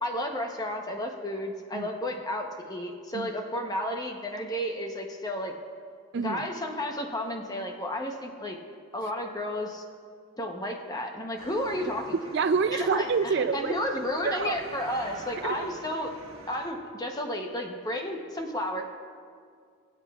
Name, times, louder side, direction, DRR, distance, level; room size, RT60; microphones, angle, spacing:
voice 1, 0.0-5.5 6.1-8.6 8.9-9.8 10.4-12.2 12.7-16.1 16.5-18.8, left 1 dB, 15° left, 3 dB, 0.8 m, -32 dB
sound 1, 11.4-16.7, right 2 dB, 70° right, 1.4 m, -47 dB
voice 2, 12.3-13.7 14.2-14.6 15.4-15.6, right 5 dB, 50° right, 10 dB, 0.3 m, -27 dB
24.0 x 8.1 x 2.4 m, 2.1 s
head